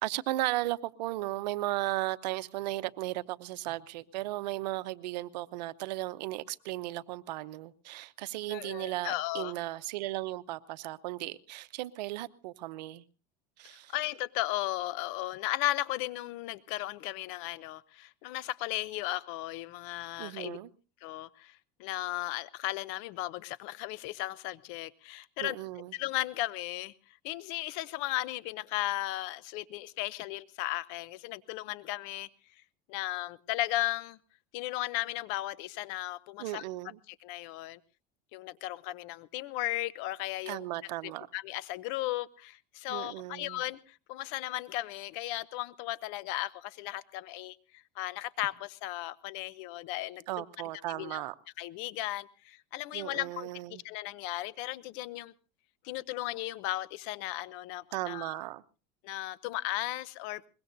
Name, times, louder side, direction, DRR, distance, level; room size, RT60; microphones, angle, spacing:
voice 1, 0.0-13.0 13.6-13.9 20.2-20.7 25.4-25.9 36.4-37.0 40.5-41.3 42.9-43.6 50.3-51.3 52.9-53.8 57.9-58.6, right 17 dB, 90° right, 0.8 m, -36 dB
voice 2, 8.5-9.5 13.7-20.6 21.0-25.6 25.9-26.9 27.2-32.3 32.9-34.2 34.5-36.6 37.1-37.8 38.3-40.6 41.3-50.4 50.9-51.2 51.6-53.5 53.8-55.3 55.8-58.4 59.0-60.5, left 16 dB, 70° left, 0.8 m, -36 dB
23.0 x 21.5 x 2.6 m
supercardioid pair, 115°, 21 cm